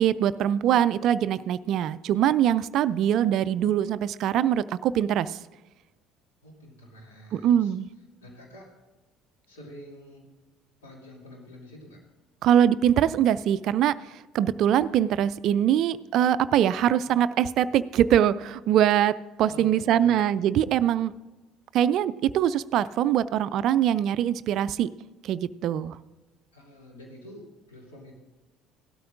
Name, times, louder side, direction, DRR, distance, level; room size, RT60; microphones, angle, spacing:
voice 1, 0.0-5.4 7.3-7.9 12.4-14.0 14.3-21.1 21.7-24.9 25.2-26.0, right 10 dB, 55° right, 17 dB, 0.3 m, -23 dB
voice 2, 6.4-7.8 8.2-8.7 9.5-10.3 10.8-12.0 19.4-20.1 26.5-28.1, equal, 80° left, -2 dB, 2.6 m, -47 dB
17.0 x 12.5 x 2.5 m, 1.2 s
figure-of-eight pair, 55°, 0 cm